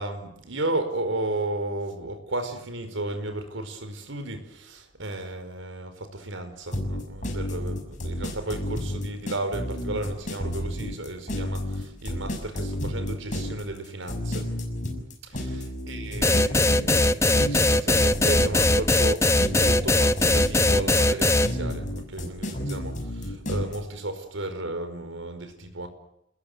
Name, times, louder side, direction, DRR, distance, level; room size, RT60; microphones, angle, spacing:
voice 1, 0.0-14.5 15.2-25.9, right 2 dB, 80° right, 9 dB, 5.1 m, -34 dB
sound 1, 6.7-23.8, left 1 dB, 40° left, 6.6 m, -31 dB
sound 2, 16.2-21.5, left 2 dB, 15° left, 1.0 m, -20 dB
29.0 x 21.0 x 8.1 m, 0.83 s
head